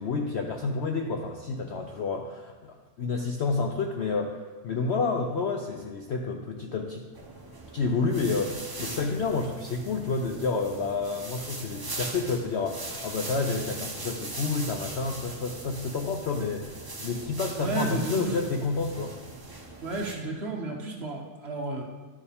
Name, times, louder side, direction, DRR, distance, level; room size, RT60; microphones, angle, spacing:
voice 1, 0.0-7.1 7.7-19.1, left 4 dB, 65° left, 3 dB, 0.6 m, -29 dB
sound 1, 7.1-20.1, right 2 dB, 25° right, 0.5 m, -40 dB
voice 2, 17.6-18.4 19.8-21.8, right 2 dB, 50° right, 1 dB, 0.9 m, -32 dB
11.0 x 6.9 x 3.5 m, 1.5 s
omnidirectional pair, 1.7 m